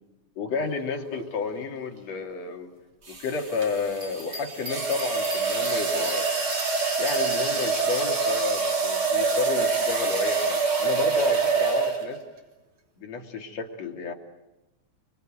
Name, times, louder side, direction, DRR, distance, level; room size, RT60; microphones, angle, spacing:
voice 1, 0.4-2.7 3.1-6.3 7.0-12.2 13.0-14.1, left 5 dB, 60° left, 3 dB, 3.7 m, -31 dB
sound 1, 1.1-1.4 3.1-12.3, right 4 dB, 40° right, 4.0 m, -26 dB
Bell, 3.9-8.3 8.8-8.9, equal, 25° right, 4.9 m, -40 dB
28.5 x 23.0 x 9.1 m, 1.0 s
omnidirectional pair, 3.4 m